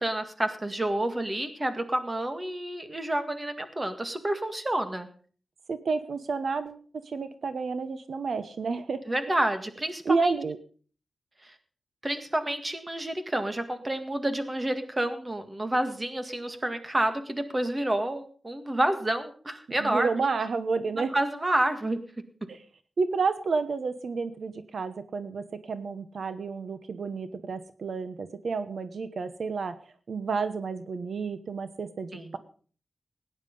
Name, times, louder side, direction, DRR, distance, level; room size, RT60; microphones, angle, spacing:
voice 1, 0.0-5.1 9.1-10.4 11.4-11.6 12.0-20.1 20.9-22.0 32.1-32.4, right 1 dB, 25° right, 8 dB, 1.9 m, -29 dB
voice 2, 5.7-9.0 10.0-10.6 19.8-21.1 22.5-22.6 23.0-29.7 30.1-32.4, right 4 dB, 75° right, 11 dB, 1.0 m, -30 dB
17.0 x 9.8 x 5.3 m, 0.43 s
wide cardioid pair, 105°, 0 cm